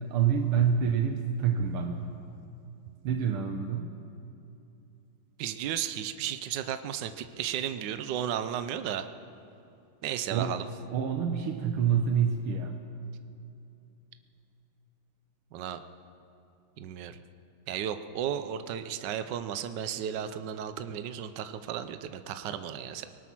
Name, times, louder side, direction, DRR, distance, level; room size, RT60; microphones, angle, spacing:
voice 1, 0.0-2.1 3.0-3.9 10.3-10.5 10.9-12.8, right 7 dB, 90° right, 4 dB, 1.9 m, -27 dB
voice 2, 5.4-9.1 10.0-10.7 15.5-15.8 16.8-17.2 17.7-23.0, right 9 dB, 65° right, 10 dB, 1.3 m, -34 dB
24.5 x 19.5 x 6.1 m, 2.7 s
omnidirectional pair, 2.3 m